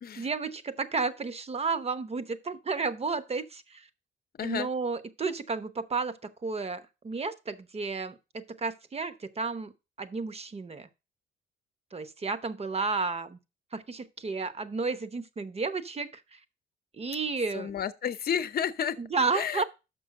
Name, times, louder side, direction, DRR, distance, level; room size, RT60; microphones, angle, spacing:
voice 1, 0.2-3.8 4.4-6.1 6.4-9.7 10.0-10.9 11.9-13.4 13.7-16.2 17.0-17.7 19.0-19.6, right 4 dB, 30° right, 1.0 m, -32 dB
voice 2, 4.4-4.7 17.5-19.0 19.3-19.6, left 8 dB, 50° left, 0.8 m, -31 dB
6.2 x 5.6 x 6.4 m
cardioid pair, 90°, 20 cm